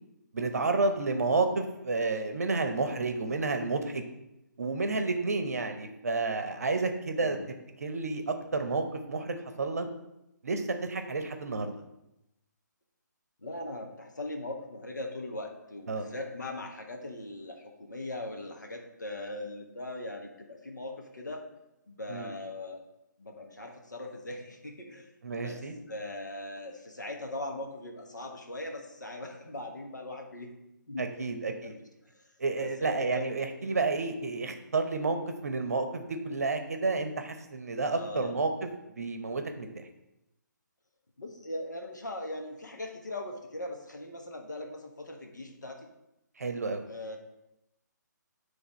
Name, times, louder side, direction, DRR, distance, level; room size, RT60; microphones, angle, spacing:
voice 1, 0.3-4.0 4.6-7.4 7.8-9.8 10.4-11.7 15.9-16.0 22.1-22.3 25.2-25.7 31.0-31.8 32.4-35.2 35.4-38.7 39.0-39.7 46.4-46.8, right 3 dB, 55° right, 6 dB, 0.8 m, -30 dB
voice 2, 7.2-7.5 13.4-21.5 21.9-22.8 23.2-25.1 25.4-30.5 30.9-31.7 32.1-32.2 32.6-33.2 33.6-33.9 37.9-38.3 41.2-45.9 46.9-47.2, left 2 dB, 70° left, 2 dB, 1.2 m, -40 dB
9.5 x 3.3 x 4.2 m, 0.89 s
figure-of-eight pair, 140°, 10 cm